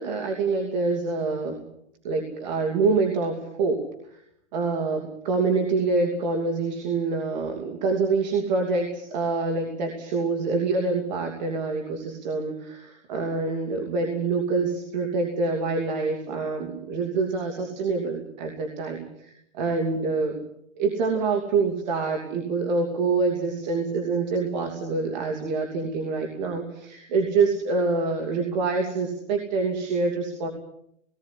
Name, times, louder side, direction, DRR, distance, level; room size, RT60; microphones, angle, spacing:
voice 1, 0.0-1.6 2.0-3.9 4.5-20.4 20.8-30.5, right 4 dB, 40° right, 3 dB, 2.9 m, -26 dB
19.0 x 16.0 x 9.9 m, 0.74 s
hypercardioid pair, 170°, 35 cm